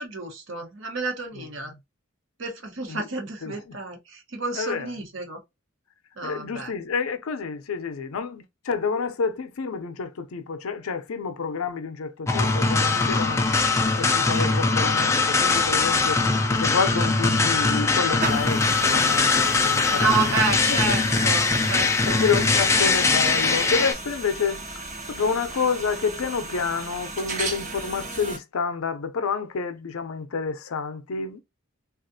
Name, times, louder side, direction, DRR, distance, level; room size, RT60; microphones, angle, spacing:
voice 1, 0.0-1.7 2.4-5.4 6.2-6.7 19.9-22.3, right 4 dB, 60° right, 1.0 m, -30 dB
voice 2, 3.4-3.8 4.5-4.9 6.2-13.4 14.0-21.0 22.1-31.4, left 5 dB, 85° left, 0.5 m, -29 dB
sound 1, 12.3-23.9, left 3 dB, 15° left, 0.3 m, -21 dB
sound 2, 18.2-28.4, right 3 dB, 35° right, 0.7 m, -35 dB
3.5 x 2.4 x 2.6 m
head